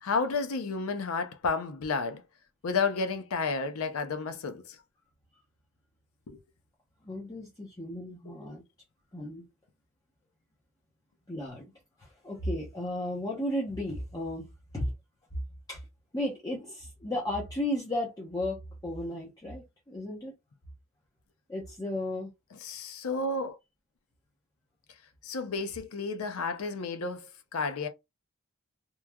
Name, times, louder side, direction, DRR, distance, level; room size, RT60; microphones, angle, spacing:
voice 1, 0.0-2.2 2.6-4.6 6.3-6.4 8.3-8.4 22.6-23.6 25.2-27.9, left 4 dB, 75° left, 0.5 m, -31 dB
voice 2, 7.0-8.6 9.1-9.4 11.3-11.7 12.0-14.5 14.7-14.9 15.3-15.4 15.7-15.8 16.1-20.3 21.5-22.3, left 1 dB, 15° left, 0.7 m, -34 dB
3.0 x 2.3 x 2.2 m
head